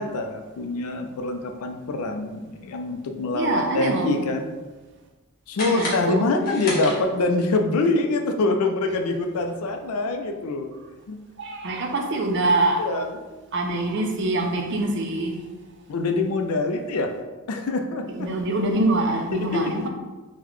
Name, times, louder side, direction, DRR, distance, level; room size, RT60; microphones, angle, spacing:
voice 1, 0.0-4.5 5.5-10.7 11.1-11.2 12.8-13.1 15.9-17.1 17.5-18.1 19.3-19.7, left 3 dB, 85° left, 5 dB, 0.4 m, -25 dB
voice 2, 3.3-4.1 5.6-6.2 11.4-12.9 13.5-15.4 18.1-19.9, right 2 dB, 55° right, 3 dB, 0.4 m, -24 dB
sound 1, 5.5-7.5, left 1 dB, 40° left, 0.8 m, -33 dB
3.8 x 2.1 x 3.0 m, 1.2 s
head